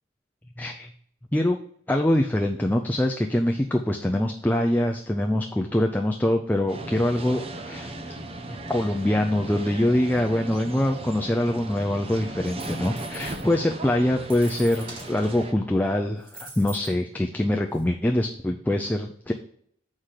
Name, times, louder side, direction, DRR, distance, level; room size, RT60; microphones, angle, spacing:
voice 1, 0.6-0.9 1.3-1.6 1.9-8.0 8.5-19.3, left 1 dB, 10° left, 2 dB, 0.5 m, -24 dB
sound 1, 6.7-15.5, right 2 dB, 30° right, 0.8 m, -37 dB
sound 2, 12.4-13.4 14.2-15.4 16.2-16.9 17.7-17.8, right 2 dB, 45° right, 3.5 m, -43 dB
6.5 x 5.0 x 5.7 m, 0.64 s
head